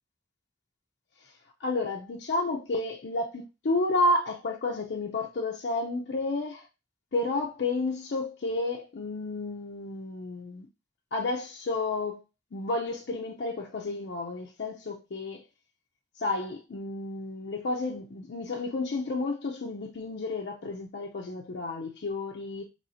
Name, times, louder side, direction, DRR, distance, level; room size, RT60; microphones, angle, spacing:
voice 1, 1.6-6.7 7.1-10.7 11.1-12.2 12.5-15.4 16.2-22.7, left 2 dB, 80° left, 0.5 m, -31 dB
4.2 x 3.0 x 2.7 m
head